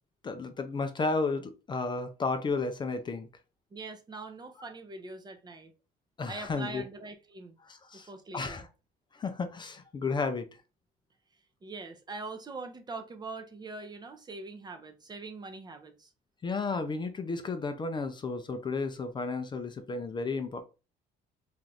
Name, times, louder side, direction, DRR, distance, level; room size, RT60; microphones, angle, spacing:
voice 1, 0.2-3.3 6.2-6.8 7.6-8.1 8.3-8.7 9.1-10.5 16.4-20.6, left 4 dB, 25° left, 0.4 m, -33 dB
voice 2, 3.7-5.7 6.3-7.5 7.9-8.7 11.6-16.1, right 3 dB, 25° right, 0.5 m, -43 dB
2.6 x 2.4 x 3.1 m
cardioid pair, 110°, 17 cm